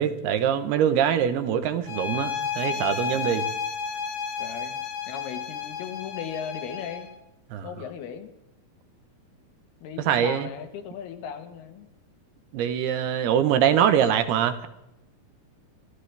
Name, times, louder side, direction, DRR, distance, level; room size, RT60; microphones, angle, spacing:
voice 1, 0.0-3.5 7.5-7.7 10.1-10.5 12.5-14.7, right 9 dB, 90° right, 10 dB, 3.0 m, -23 dB
sound 1, 1.9-7.1, left 6 dB, 65° left, 2.2 m, -32 dB
voice 2, 2.7-3.5 4.4-4.8 5.1-7.1 7.6-8.3 9.8-11.9, left 8 dB, 85° left, 7 dB, 3.3 m, -37 dB
25.0 x 14.5 x 3.4 m, 0.87 s
omnidirectional pair, 4.4 m